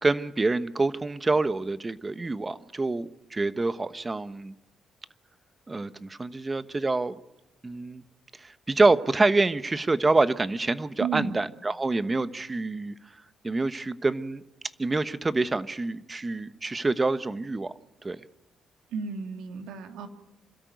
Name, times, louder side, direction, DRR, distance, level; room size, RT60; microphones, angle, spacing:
voice 1, 0.0-4.5 5.7-7.1 7.6-8.0 8.4-12.9 13.4-14.4 14.8-17.7 18.0-18.2, right 3 dB, 20° right, 1.1 m, -26 dB
voice 2, 11.0-11.4 18.9-20.1, right 6 dB, 85° right, 2.2 m, -33 dB
26.5 x 13.5 x 9.4 m
cardioid pair, 90°, 0 cm